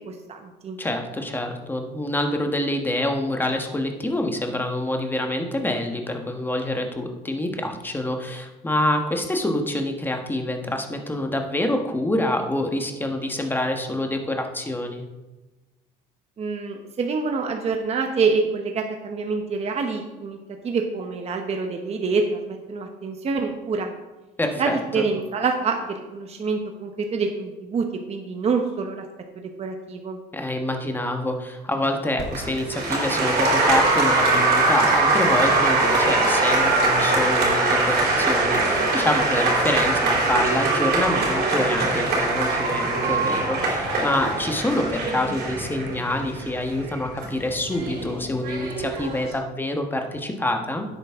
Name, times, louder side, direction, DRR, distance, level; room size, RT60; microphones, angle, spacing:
voice 1, 0.1-0.8 16.4-20.4 20.6-23.9 24.6-29.0 29.4-30.2, right 4 dB, 40° right, 4 dB, 1.0 m, -26 dB
voice 2, 0.8-15.1 24.4-25.0 30.3-50.9, left 1 dB, 10° left, 4 dB, 1.3 m, -26 dB
Applause, 32.2-49.3, right 2 dB, 70° right, 3.6 m, -22 dB
10.5 x 8.2 x 3.6 m, 1.1 s
cardioid pair, 110°, 17 cm